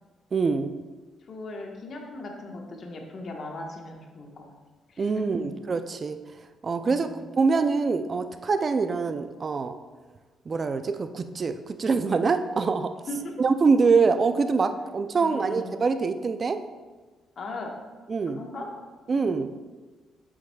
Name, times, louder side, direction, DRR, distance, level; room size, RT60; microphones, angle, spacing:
voice 1, 0.3-0.7 5.0-6.2 6.6-9.7 10.5-12.9 13.4-16.6 18.1-18.4 19.1-19.5, right 4 dB, 40° right, 9 dB, 0.4 m, -24 dB
voice 2, 1.3-4.5 4.9-5.2 6.8-7.2 13.1-13.3 15.2-15.8 17.4-17.7 18.3-18.7 19.1-19.3, left 2 dB, 50° left, 1 dB, 1.2 m, -38 dB
7.7 x 7.3 x 2.3 m, 1.3 s
cardioid pair, 90°, 0 cm